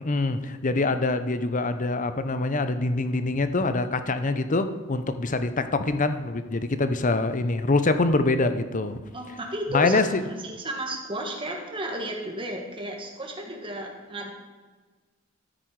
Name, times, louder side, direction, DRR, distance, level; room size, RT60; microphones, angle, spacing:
voice 1, 0.0-9.0 9.7-10.2, left 2 dB, 35° left, 10 dB, 0.7 m, -25 dB
voice 2, 9.1-14.3, equal, 25° right, 1 dB, 1.9 m, -33 dB
13.0 x 9.2 x 4.7 m, 1.4 s
head